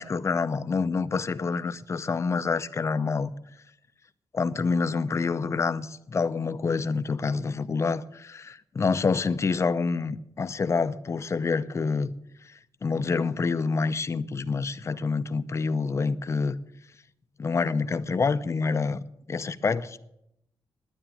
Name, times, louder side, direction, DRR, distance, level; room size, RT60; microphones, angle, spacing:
voice 1, 0.0-3.3 4.3-12.1 12.4-16.6 17.4-19.0 19.3-20.0, left 4 dB, 35° left, 0.6 m, -27 dB
10.0 x 9.5 x 8.8 m
wide cardioid pair, 130°, 8 cm